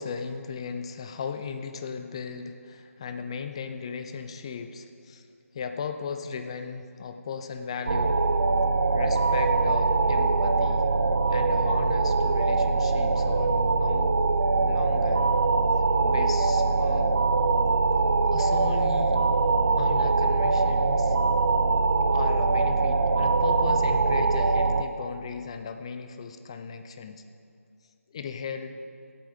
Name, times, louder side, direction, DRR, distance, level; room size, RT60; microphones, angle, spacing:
voice 1, 0.0-5.3 5.5-8.2 8.9-10.9 11.3-14.1 14.6-15.3 16.0-17.2 18.3-19.2 19.8-21.2 22.1-27.2 28.1-28.7, left 6 dB, 20° left, 8 dB, 0.6 m, -36 dB
sound 1, 7.9-24.8, right 3 dB, 45° right, 0.6 m, -23 dB
17.0 x 9.0 x 5.2 m, 2.4 s
figure-of-eight pair, 165°, 8 cm